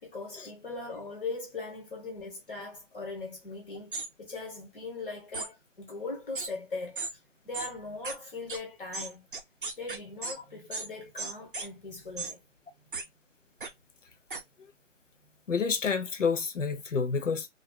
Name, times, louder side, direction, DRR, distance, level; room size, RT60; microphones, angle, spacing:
voice 1, 0.0-9.3 9.8-12.4, left 3 dB, 45° left, 1.0 m, -40 dB
sound 1, 3.9-4.1 5.3-5.5 6.3-6.5 7.0-7.1 7.5-7.7 8.0-8.1 8.5-8.6 8.9-10.4 10.7-10.9 11.2-11.7 12.2-12.3 12.9-13.0 13.6-13.7 14.3-14.4, right 3 dB, 45° right, 0.5 m, -35 dB
voice 2, 15.5-17.5, left 5 dB, 90° left, 0.7 m, -28 dB
2.5 x 2.2 x 2.3 m
figure-of-eight pair, 155°, 37 cm